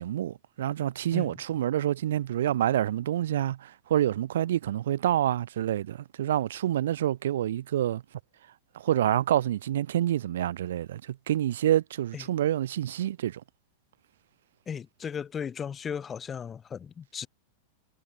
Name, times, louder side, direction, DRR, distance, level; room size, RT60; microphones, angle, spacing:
voice 1, 0.0-8.0 8.7-13.4, right 12 dB, 60° right, 0.4 m, -27 dB
voice 2, 14.7-17.3, left 7 dB, 20° left, 0.6 m, -36 dB
figure-of-eight pair, 90°, 0 cm